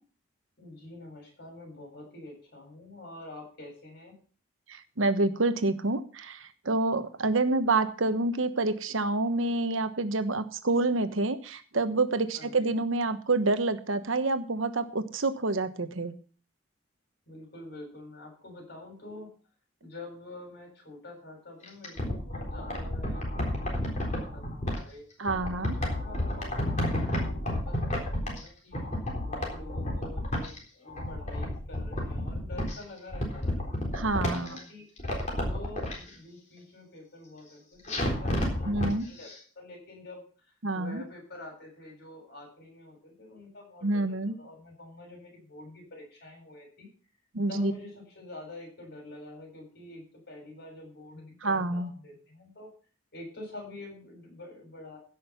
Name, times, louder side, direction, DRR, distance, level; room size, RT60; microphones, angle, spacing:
voice 1, 0.6-4.1 12.3-12.8 17.3-19.3 19.8-25.0 25.7-28.8 29.2-34.8 35.3-39.3 39.6-40.3 40.7-46.9 47.5-52.7 53.1-55.0, left 2 dB, 50° left, 1 dB, 7.5 m, -47 dB
voice 2, 5.0-6.4 6.6-16.2 25.2-25.8 33.9-34.6 38.7-39.0 40.6-41.0 43.8-44.3 47.3-47.7 51.4-51.9, right 2 dB, 80° right, 11 dB, 1.2 m, -27 dB
sound 1, 21.6-24.8 25.3-28.5 28.7-30.6 30.9-32.8 33.1-34.6 35.0-35.9 37.9-38.9 39.2-39.3, left 1 dB, 35° left, 3.9 m, -31 dB
16.0 x 6.4 x 6.0 m, 0.40 s
head